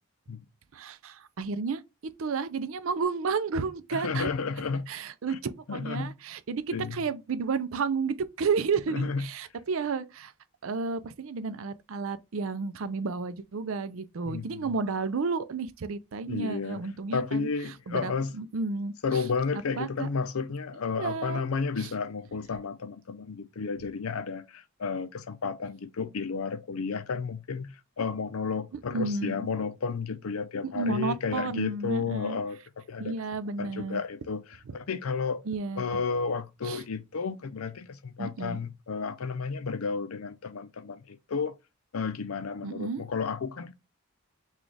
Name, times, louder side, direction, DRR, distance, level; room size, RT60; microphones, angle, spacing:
voice 1, 0.7-1.8 2.2-4.3 4.9-6.6 6.9-10.3 10.6-17.5 17.9-19.2 19.8-20.1 21.0-21.4 21.8-21.9 28.9-29.5 30.6-32.4 33.0-34.0 35.5-35.8 36.6-36.8 38.2-38.6 42.6-43.0, right 4 dB, 70° right, 0.5 m, -32 dB
voice 2, 3.9-4.9 5.3-5.4 5.7-6.1 6.7-7.0 8.9-9.3 14.3-14.7 16.2-16.8 17.1-18.3 19.0-32.6 32.9-33.2 33.6-35.4 35.8-41.5 41.9-43.7, left 5 dB, 85° left, 0.6 m, -32 dB
6.1 x 2.4 x 3.3 m
head